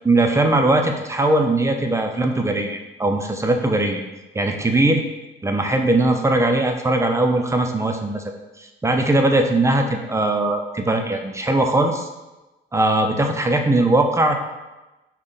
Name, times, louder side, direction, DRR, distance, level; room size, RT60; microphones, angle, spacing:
voice 1, 0.1-4.0 4.3-5.0 5.4-12.1 12.7-14.4, right 2 dB, 15° right, 4 dB, 0.4 m, -20 dB
3.7 x 2.2 x 3.7 m, 1.1 s
cardioid pair, 90°, 20 cm